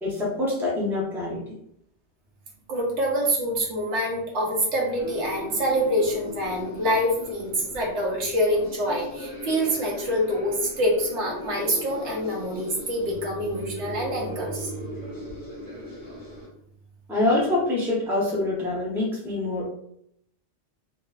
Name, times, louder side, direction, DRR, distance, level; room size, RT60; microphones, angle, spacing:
voice 1, 0.0-1.6 17.1-19.7, left 2 dB, 5° right, -4 dB, 0.6 m, -25 dB
voice 2, 2.7-14.7, equal, 80° right, -1 dB, 1.1 m, -26 dB
sound 1, 4.9-16.5, left 1 dB, 40° left, 0.9 m, -38 dB
3.0 x 2.0 x 2.3 m, 0.72 s
omnidirectional pair, 1.2 m